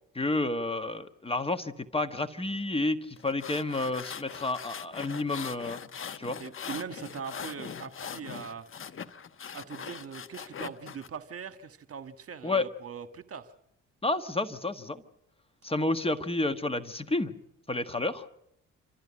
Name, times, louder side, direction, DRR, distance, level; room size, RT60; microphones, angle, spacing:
voice 1, 0.1-5.8 6.2-6.4 12.4-12.7 14.0-15.0 15.6-17.3 17.7-18.3, left 2 dB, 20° left, 10 dB, 1.3 m, -30 dB
sound 1, 3.2-11.1, left 7 dB, 45° left, 1.1 m, -41 dB
voice 2, 6.4-8.7 9.5-13.5, right 7 dB, 50° right, 10 dB, 1.5 m, -41 dB
27.5 x 13.5 x 9.7 m, 0.82 s
cardioid pair, 90°, 30 cm